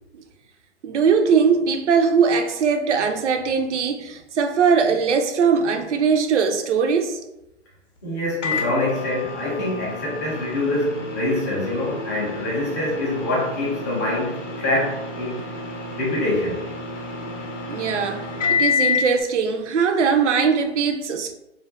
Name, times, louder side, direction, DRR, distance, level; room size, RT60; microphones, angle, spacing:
voice 1, 0.8-7.2 17.7-21.3, right 6 dB, 75° right, 0.5 m, -20 dB
voice 2, 8.0-15.4 16.0-16.6, left 1 dB, 15° left, 0.3 m, -25 dB
Microwave oven, 8.4-19.2, left 4 dB, 90° left, 0.6 m, -29 dB
2.4 x 2.1 x 2.4 m
figure-of-eight pair, 130°, 36 cm